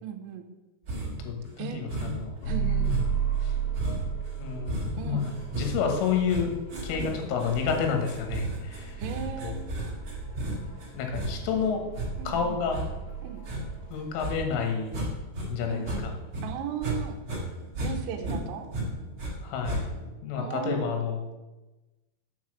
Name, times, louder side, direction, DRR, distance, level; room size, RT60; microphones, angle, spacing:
voice 1, 0.0-0.5 1.6-1.8 2.5-3.0 5.0-5.3 6.9-7.1 9.0-10.0 12.2-12.6 13.2-13.4 15.7-16.1 16.4-17.2 17.8-18.7 20.4-20.9, right 9 dB, 80° right, 3 dB, 2.9 m, -37 dB
sound 1, 0.9-1.3 1.9-2.4 2.8-15.5 15.8-17.0 17.2-19.3 19.6-20.1, right 1 dB, 55° right, 1.3 m, -34 dB
voice 2, 1.2-2.4 3.4-3.6 4.4-6.5 6.8-9.0 9.4-9.6 10.9-11.8 12.3-12.8 13.9-15.0 15.5-16.1 19.4-19.9 20.2-21.3, left 6 dB, 85° left, 4 dB, 3.7 m, -30 dB
sound 2, 2.4-14.6, right 6 dB, 60° left, 3.7 m, -35 dB
8.0 x 4.6 x 6.3 m, 1.1 s
omnidirectional pair, 5.7 m